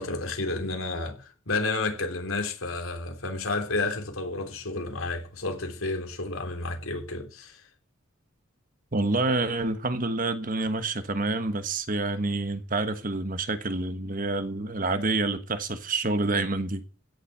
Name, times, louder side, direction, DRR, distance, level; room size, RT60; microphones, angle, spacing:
voice 1, 0.0-7.6, left 3 dB, 85° left, 3.3 m, -31 dB
voice 2, 8.9-16.8, right 2 dB, 40° right, 1.4 m, -28 dB
16.5 x 7.5 x 6.9 m
head